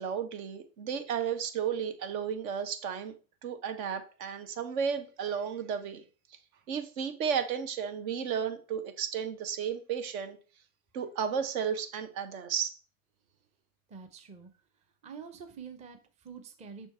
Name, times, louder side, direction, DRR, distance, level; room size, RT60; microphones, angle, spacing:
voice 1, 0.0-3.1 3.4-6.0 6.7-10.4 10.9-12.7, right 7 dB, 65° right, 8 dB, 1.4 m, -33 dB
voice 2, 13.9-14.5 15.0-16.9, right 6 dB, 15° right, 6 dB, 0.7 m, -46 dB
6.1 x 4.4 x 4.3 m, 0.35 s
hypercardioid pair, 120°, 45 cm